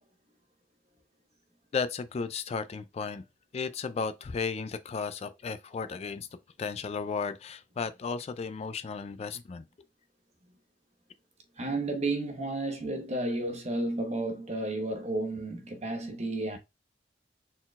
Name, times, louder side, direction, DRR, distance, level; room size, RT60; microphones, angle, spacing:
voice 1, 1.7-3.2 3.5-6.3 6.6-9.6, left 5 dB, 35° left, 0.3 m, -34 dB
voice 2, 11.6-16.6, right 2 dB, 40° right, 1.0 m, -32 dB
4.2 x 3.9 x 2.3 m
head